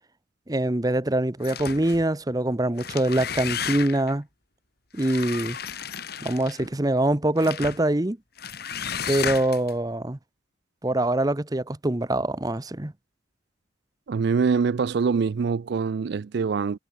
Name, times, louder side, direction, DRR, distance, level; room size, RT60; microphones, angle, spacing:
voice 1, 0.5-4.2 4.9-5.6 6.2-8.2 9.1-10.2 10.8-12.9, right 1 dB, 20° right, 0.7 m, -24 dB
sound 1, 1.4-2.1 2.7-4.1 5.0-6.7 7.4-7.8 8.4-9.7, left 7 dB, 50° left, 2.5 m, -33 dB
voice 2, 14.1-16.8, right 5 dB, 55° right, 0.3 m, -24 dB
head